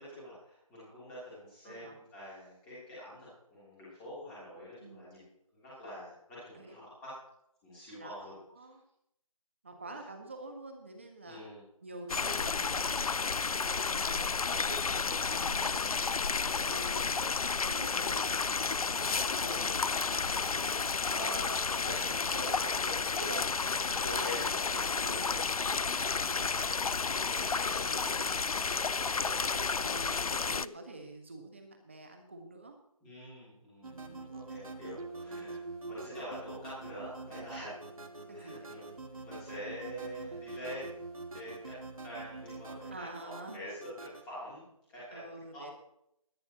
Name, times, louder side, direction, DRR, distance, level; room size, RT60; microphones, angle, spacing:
voice 1, 0.0-5.2 5.6-7.1 7.6-8.3 11.2-11.6 21.1-22.1 22.6-22.9 23.8-24.4 24.7-25.3 29.0-29.7 33.0-35.6 35.9-37.7 38.3-38.8 39.2-41.0 41.3-43.9 44.2-44.6 44.9-45.2 45.5-45.7, equal, 5° left, -10 dB, 3.2 m, -45 dB
voice 2, 1.6-2.0 4.8-5.2 6.5-6.7 7.9-8.8 9.6-11.4 11.8-13.7 14.4-16.2 16.6-17.4 17.7-18.4 18.9-21.1 21.8-22.0 22.3-23.5 24.0-28.8 29.5-32.8 33.9-34.2 38.3-38.7 42.9-43.7 45.1-45.7, right 2 dB, 20° right, 4 dB, 1.4 m, -47 dB
sound 1, 12.1-30.7, left 5 dB, 85° left, 0.5 m, -31 dB
sound 2, 33.8-44.2, right 3 dB, 75° right, 2.1 m, -45 dB
20.5 x 10.5 x 3.0 m, 0.77 s
figure-of-eight pair, 175°, 18 cm